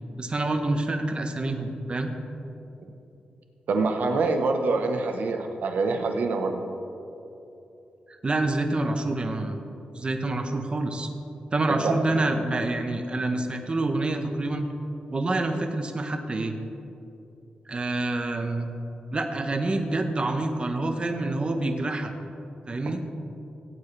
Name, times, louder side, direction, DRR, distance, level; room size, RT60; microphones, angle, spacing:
voice 1, 0.2-2.1 8.1-9.6 9.9-11.1 11.5-14.7 15.1-16.5 17.7-18.7 19.1-22.1 22.7-23.0, right 2 dB, 35° right, 5 dB, 1.0 m, -27 dB
voice 2, 3.7-6.6 11.7-11.9, right 3 dB, 80° right, 5 dB, 1.0 m, -25 dB
16.5 x 8.6 x 3.3 m, 2.9 s
cardioid pair, 70°, 3 cm